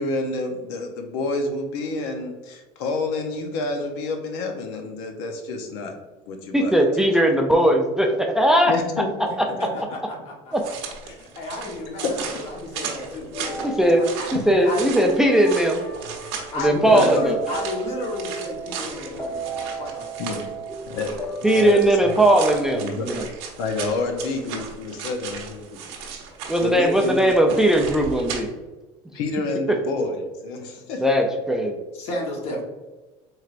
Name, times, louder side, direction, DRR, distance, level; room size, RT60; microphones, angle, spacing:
voice 1, 0.0-6.0 6.3-6.7 8.7-9.3 11.7-12.1 13.8-13.9 14.3-14.5 16.6-17.2 20.2-20.4 20.9-22.2 22.7-23.1 23.6-25.8 26.6-27.3 29.1-31.0, left 3 dB, 90° left, 4 dB, 0.6 m, -28 dB
voice 2, 6.5-8.7 10.5-10.6 13.6-14.1 14.5-15.8 16.6-17.4 21.4-23.2 26.5-28.5 31.0-31.8, right 1 dB, 5° right, 3 dB, 0.3 m, -19 dB
voice 3, 9.6-10.7 11.0-14.3 14.6-14.9 16.5-20.1 20.3-20.6 31.9-32.6, left 1 dB, 50° left, -1 dB, 1.2 m, -32 dB
sound 1, 10.5-28.4, right 6 dB, 85° right, 0.9 m, -36 dB
sound 2, 13.3-22.5, right 3 dB, 15° left, 0.9 m, -35 dB
4.5 x 3.2 x 2.4 m, 1.2 s
cardioid pair, 135°, 13 cm